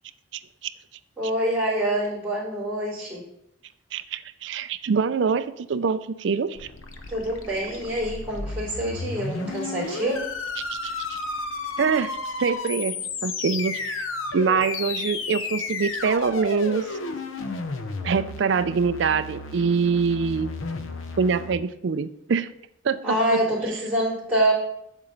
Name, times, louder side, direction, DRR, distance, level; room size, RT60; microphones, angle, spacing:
voice 1, 1.2-3.2 7.1-10.2 23.0-24.5, right 1 dB, 5° right, -10 dB, 3.3 m, -26 dB
voice 2, 3.9-6.7 10.8-11.2 11.8-14.1 14.3-16.9 18.0-20.5 21.2-22.5 22.8-23.4, right 5 dB, 65° right, 13 dB, 0.4 m, -24 dB
sound 1, 6.5-21.5, left 3 dB, 85° left, 0.7 m, -33 dB
7.2 x 6.6 x 3.9 m, 0.78 s
head